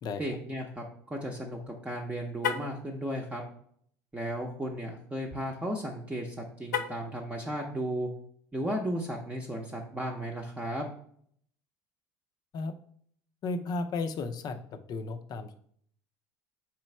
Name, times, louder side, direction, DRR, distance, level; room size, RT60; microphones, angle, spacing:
voice 1, 0.2-3.4 4.1-8.1 8.5-10.9, right 1 dB, 15° right, 0 dB, 0.8 m, -35 dB
Car, 2.3-2.8 6.6-7.2, left 7 dB, 90° left, 0.4 m, -32 dB
voice 2, 13.4-15.6, left 3 dB, 45° left, 8 dB, 0.6 m, -34 dB
3.9 x 3.1 x 4.4 m, 0.62 s
hypercardioid pair, 80°, 9 cm